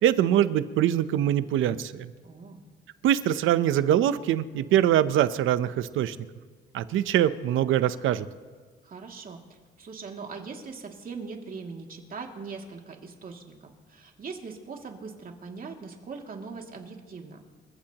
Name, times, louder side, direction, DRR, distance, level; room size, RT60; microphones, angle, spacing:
voice 1, 0.0-2.1 3.0-6.2 6.7-8.3, right 11 dB, 85° right, 13 dB, 0.8 m, -23 dB
voice 2, 2.2-2.6 8.8-17.4, right 4 dB, 45° right, 1 dB, 2.6 m, -41 dB
28.5 x 15.5 x 3.0 m, 1.5 s
cardioid pair, 90°, 20 cm